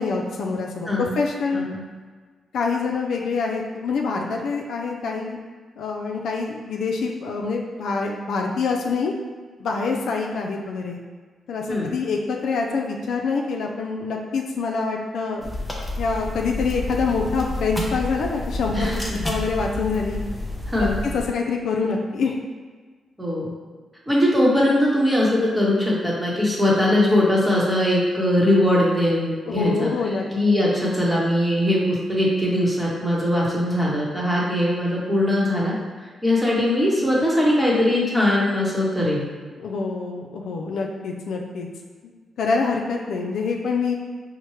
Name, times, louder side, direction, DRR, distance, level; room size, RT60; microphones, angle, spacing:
voice 1, 0.0-1.7 2.5-5.4 5.8-9.1 9.6-11.0 11.5-15.5 16.0-20.2 20.7-20.9 21.1-22.4 29.5-30.3 39.6-41.7 42.4-43.9, left 4 dB, 80° left, 0 dB, 0.4 m, -25 dB
sound 1, 15.4-21.3, left 1 dB, 10° left, 0.6 m, -29 dB
voice 2, 18.7-19.2 20.7-21.0 23.2-23.5 24.1-29.9 30.3-35.8 36.2-39.3, left 1 dB, 5° right, -5 dB, 1.0 m, -21 dB
4.3 x 2.1 x 3.1 m, 1.5 s
cardioid pair, 85°, 0 cm